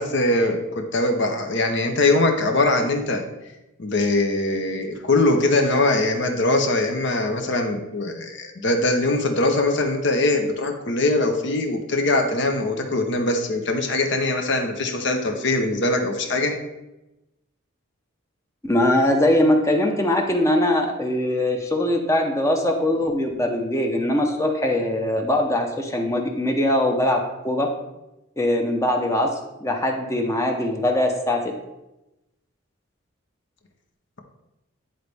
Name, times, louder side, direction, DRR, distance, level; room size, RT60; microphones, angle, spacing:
voice 1, 0.0-3.2 3.8-16.5, left 2 dB, 60° left, 4 dB, 0.9 m, -22 dB
voice 2, 18.6-27.7 28.4-31.4, left 1 dB, 15° left, 2 dB, 0.7 m, -21 dB
10.0 x 4.0 x 3.4 m, 0.95 s
head